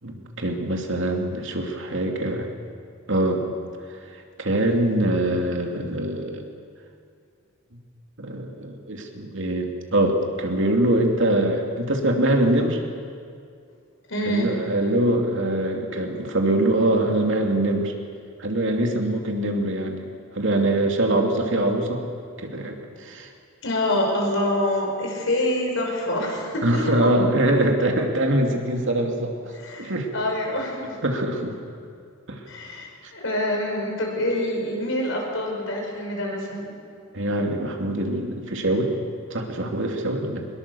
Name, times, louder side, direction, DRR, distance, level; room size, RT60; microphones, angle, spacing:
voice 1, 0.0-2.5 3.1-3.4 4.4-6.4 8.2-12.8 14.3-17.9 18.4-22.0 22.4-23.3 26.6-30.1 31.0-31.5 32.3-32.4 37.1-38.9 39.3-40.5, right 1 dB, 65° right, 2 dB, 2.8 m, -23 dB
voice 2, 14.1-14.6 23.6-27.1 29.5-31.0 32.5-36.7, left 1 dB, 65° left, 1 dB, 5.3 m, -26 dB
24.0 x 20.5 x 7.1 m, 2.3 s
head